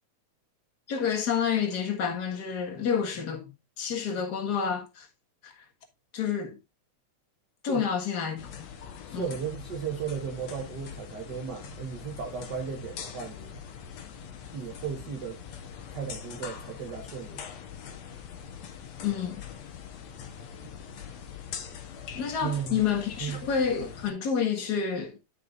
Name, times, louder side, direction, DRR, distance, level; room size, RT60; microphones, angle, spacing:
voice 1, 0.9-3.5 3.8-5.1 5.4-5.5 6.1-6.6 7.6-8.5 9.1-9.3 19.0-19.4 22.1-25.2, left 7 dB, 40° left, 1.8 m, -29 dB
sound 1, 8.4-24.1, left 7 dB, 65° left, 2.3 m, -43 dB
voice 2, 9.1-13.6 14.5-15.4 15.9-17.4 20.6-20.7 22.4-22.8 23.2-23.4, right 7 dB, 50° right, 1.3 m, -35 dB
12.0 x 5.8 x 2.5 m
omnidirectional pair, 3.4 m